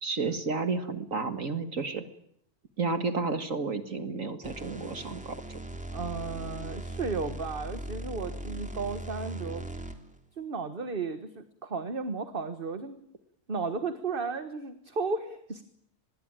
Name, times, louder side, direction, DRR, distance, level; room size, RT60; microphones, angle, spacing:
voice 1, 0.0-2.0 2.8-5.6, right 4 dB, 60° right, 9 dB, 2.1 m, -31 dB
sound 1, 4.4-10.2, right 1 dB, 5° right, 3.0 m, -39 dB
voice 2, 5.9-9.7 10.4-13.0 13.5-15.6, right 4 dB, 35° right, 10 dB, 1.6 m, -34 dB
25.5 x 21.0 x 8.9 m, 0.72 s
omnidirectional pair, 1.6 m